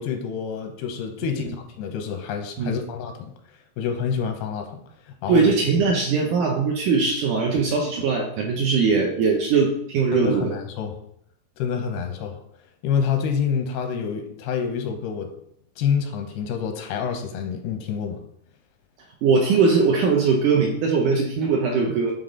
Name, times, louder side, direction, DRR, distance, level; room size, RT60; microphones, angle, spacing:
voice 1, 0.0-3.3 3.8-4.8 5.2-5.5 10.1-10.9 11.6-12.4 12.8-15.3 15.8-18.2, left 7 dB, 90° left, 5 dB, 2.9 m, -27 dB
voice 2, 5.3-10.6 19.2-22.1, right 5 dB, 75° right, 0 dB, 2.0 m, -20 dB
10.0 x 3.6 x 3.8 m, 0.70 s
omnidirectional pair, 4.5 m